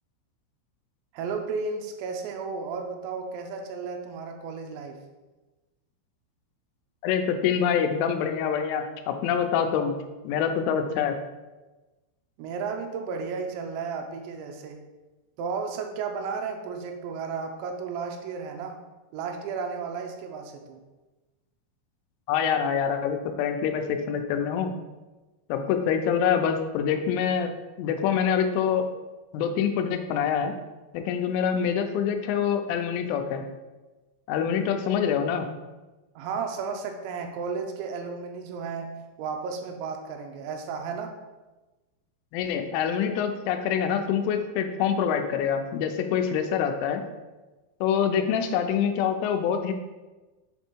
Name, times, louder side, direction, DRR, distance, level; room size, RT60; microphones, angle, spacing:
voice 1, 1.1-5.0 12.4-14.8 15.4-18.8 19.1-20.8 36.2-41.1, right 5 dB, 80° right, 3 dB, 2.7 m, -33 dB
voice 2, 7.0-9.9 10.2-11.2 22.3-24.7 25.5-27.5 27.8-28.8 29.3-30.5 30.9-33.4 34.3-35.5 42.3-47.0 47.8-49.7, left 7 dB, 85° left, 6 dB, 3.1 m, -25 dB
7.5 x 3.4 x 4.4 m, 1.2 s
omnidirectional pair, 5.6 m